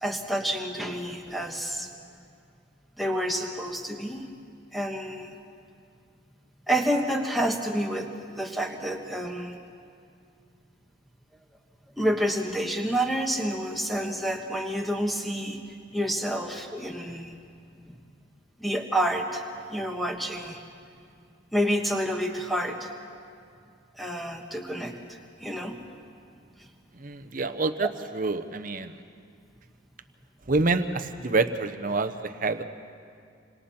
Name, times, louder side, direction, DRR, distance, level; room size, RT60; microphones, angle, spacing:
voice 1, 0.0-1.9 3.0-4.3 4.7-5.3 6.7-9.6 12.0-15.6 15.9-17.3 18.6-19.4 19.7-20.6 21.5-22.9 24.0-25.8, equal, ahead, 2 dB, 1.5 m, -29 dB
voice 2, 27.0-28.9 30.5-32.6, right 3 dB, 40° right, 9 dB, 0.9 m, -27 dB
28.0 x 26.0 x 4.4 m, 2.4 s
head